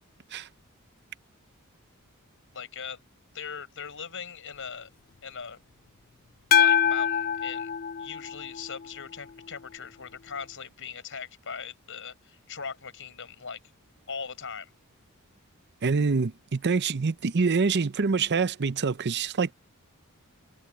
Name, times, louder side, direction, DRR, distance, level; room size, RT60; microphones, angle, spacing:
voice 1, 2.5-3.0 3.3-4.9 5.2-5.6 6.5-7.7 8.0-13.6 14.1-14.7, left 6 dB, 60° left, 6.3 m, -39 dB
sound 1, 6.5-8.9, left 8 dB, 40° left, 0.4 m, -24 dB
voice 2, 15.8-19.5, right 4 dB, 50° right, 0.7 m, -25 dB
head